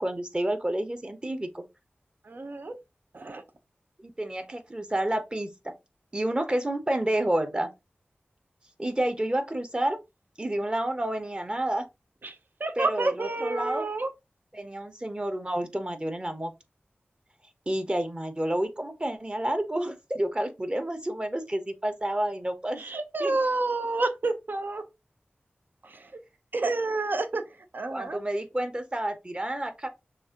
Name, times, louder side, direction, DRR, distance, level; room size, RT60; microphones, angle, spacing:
voice 1, 0.0-1.6 4.0-5.5 6.1-7.7 8.8-10.0 10.4-11.9 12.8-13.9 14.5-16.5 17.7-22.9 23.2-23.4 27.9-29.9, right 1 dB, 25° right, 1.0 m, -29 dB
voice 2, 2.2-2.8 3.1-3.4 12.2-14.1 22.8-24.8 25.8-26.1 26.5-27.4 27.7-28.2, right 3 dB, 55° right, 0.7 m, -29 dB
6.1 x 2.5 x 2.9 m
cardioid pair, 45°, 4 cm